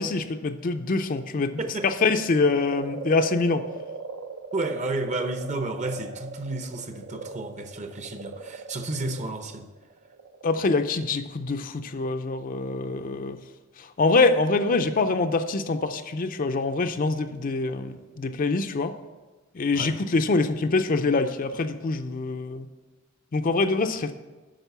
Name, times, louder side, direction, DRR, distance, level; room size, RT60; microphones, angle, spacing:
voice 1, 0.0-3.6 10.4-13.4 13.8-18.9 19.5-22.7 23.3-24.1, left 3 dB, 40° left, 8 dB, 0.5 m, -25 dB
voice 2, 1.6-1.9 4.5-9.7 19.7-20.0, right 2 dB, 35° right, 7 dB, 0.8 m, -31 dB
sound 1, 2.0-10.5, right 3 dB, 75° right, 0.9 m, -39 dB
9.1 x 6.4 x 6.8 m, 1.2 s
head